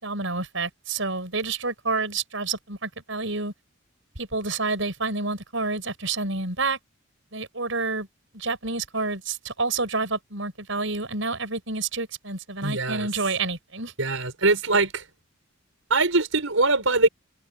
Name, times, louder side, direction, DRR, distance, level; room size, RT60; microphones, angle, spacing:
voice 1, 0.0-3.5 4.2-6.8 7.3-8.1 8.3-13.9, right 3 dB, 70° right, 7.4 m, -29 dB
voice 2, 12.6-13.1 14.0-15.1 15.9-17.1, right 3 dB, 85° right, 5.7 m, -22 dB
head